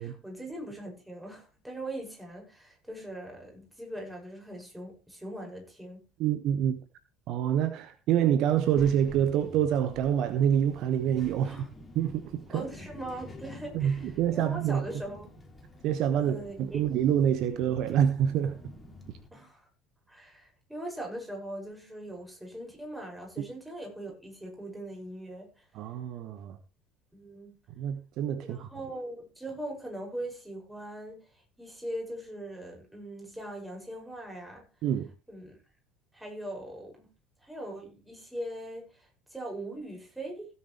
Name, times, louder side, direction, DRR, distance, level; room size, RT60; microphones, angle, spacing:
voice 1, 0.0-6.0 11.4-11.7 12.5-15.3 16.1-16.8 19.3-19.7 20.1-25.6 27.1-27.5 28.4-31.2 31.6-34.6 35.3-35.5 36.1-37.1 37.4-40.5, right 1 dB, 5° right, 6.9 m, -41 dB
voice 2, 6.2-6.8 7.3-11.5 11.9-12.6 13.7-14.8 15.8-18.6 25.7-26.6 27.8-28.7 34.8-35.1, right 9 dB, 50° right, 1.1 m, -26 dB
Child speech kid speaking, 8.5-19.3, left 1 dB, 20° left, 3.3 m, -49 dB
16.5 x 9.3 x 3.4 m
figure-of-eight pair, 65°, 0 cm